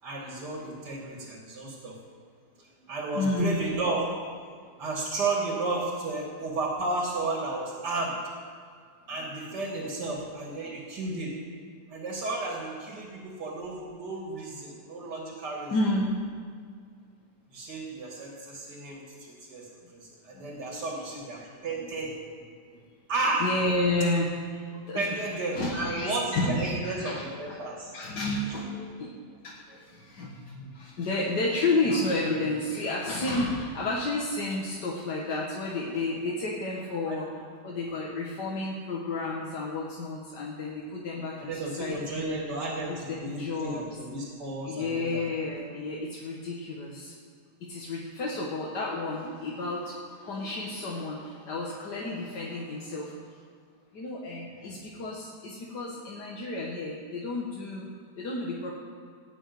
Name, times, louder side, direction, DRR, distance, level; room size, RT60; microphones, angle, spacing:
voice 1, 0.0-1.9 2.6-4.0 4.8-8.1 9.1-11.3 11.9-13.1 13.4-15.7 17.5-22.1 23.1-23.5 24.9-27.9 37.1-37.2 41.4-45.2, right 2 dB, 90° right, -1 dB, 2.6 m, -33 dB
voice 2, 3.1-3.6 15.7-16.2 20.3-20.8 21.1-21.3 21.5-21.6 22.7-22.8 23.4-25.1 25.5-27.6 27.9-29.1 29.4-37.3 37.6-42.4 42.9-43.8 44.6-47.2 47.6-53.4 53.9-57.9 58.2-58.7, left 2 dB, 90° left, -4 dB, 2.1 m, -31 dB
16.5 x 6.3 x 9.3 m, 2.1 s
omnidirectional pair, 1.7 m